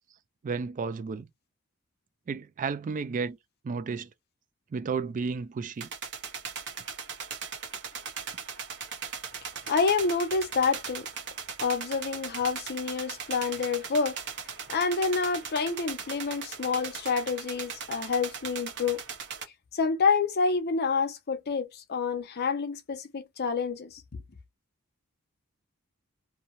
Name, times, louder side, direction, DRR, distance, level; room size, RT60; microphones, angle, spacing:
voice 1, 0.4-1.3 2.3-3.4 3.6-4.1 4.7-5.9, right 5 dB, 35° right, 0.3 m, -32 dB
sound 1, 5.8-19.4, right 6 dB, 55° right, 0.8 m, -39 dB
voice 2, 9.7-11.1 11.6-14.2 14.7-19.0 19.7-24.0, left 4 dB, 50° left, 0.6 m, -28 dB
2.6 x 2.1 x 2.9 m
head